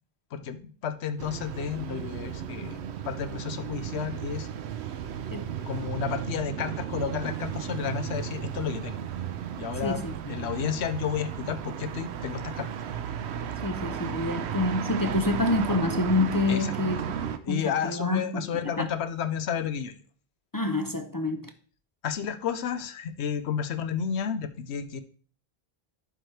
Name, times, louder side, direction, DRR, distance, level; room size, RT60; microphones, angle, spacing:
voice 1, 0.3-4.5 5.6-9.0 9.6-10.0 10.3-12.7 13.9-14.1 16.5-16.8 17.4-20.0 22.0-25.0, left 8 dB, 80° left, 11 dB, 1.0 m, -32 dB
sound 1, 1.2-17.4, right 8 dB, 85° right, 0.9 m, -34 dB
voice 2, 9.8-10.1 13.6-17.0 17.5-18.5 18.8-18.9 20.5-21.4, left 2 dB, 30° left, 7 dB, 0.4 m, -27 dB
11.0 x 4.6 x 3.2 m, 0.41 s
omnidirectional pair, 1.1 m